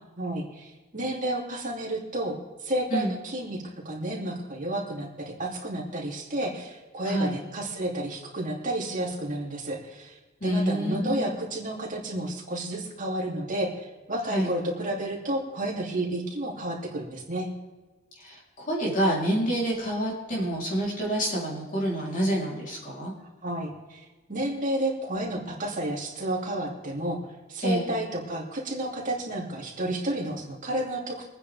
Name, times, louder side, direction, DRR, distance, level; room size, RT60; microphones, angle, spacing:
voice 1, 0.2-17.5 23.4-24.0 24.3-27.2 27.5-31.3, right 1 dB, 40° right, -1 dB, 2.9 m, -31 dB
voice 2, 7.0-7.3 10.4-11.4 14.3-14.5 18.2-23.1 27.6-27.9, right 1 dB, 40° left, -4 dB, 3.6 m, -27 dB
24.5 x 9.5 x 3.5 m, 1.2 s
head